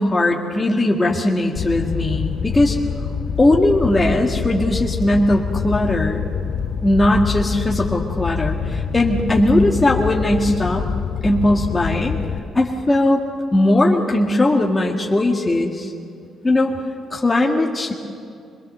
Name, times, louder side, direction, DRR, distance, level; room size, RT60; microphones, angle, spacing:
voice 1, 0.0-2.8 3.4-6.2 6.8-10.9 11.2-12.2 12.5-13.2 13.5-15.9 16.4-16.7 17.1-17.9, left 1 dB, 20° left, -1 dB, 1.8 m, -18 dB
Fire, 1.6-12.4, left 6 dB, 60° left, 1.1 m, -26 dB
24.0 x 21.0 x 6.8 m, 2.4 s
cardioid pair, 90°, 0 cm